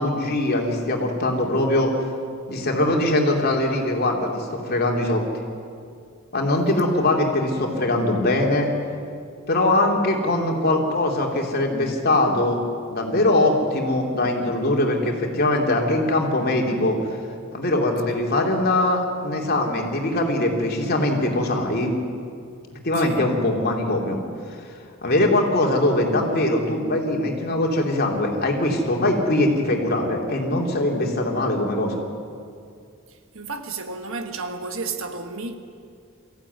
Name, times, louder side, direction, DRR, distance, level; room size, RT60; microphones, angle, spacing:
voice 1, 0.0-1.9 2.5-5.2 6.3-8.7 9.5-12.6 12.9-17.0 17.5-21.9 22.7-24.2 25.0-32.0, left 1 dB, 45° left, 3.2 m, -22 dB
voice 2, 23.0-23.3 33.3-35.5, right 4 dB, 65° right, 1.6 m, -32 dB
23.0 x 15.5 x 9.6 m
head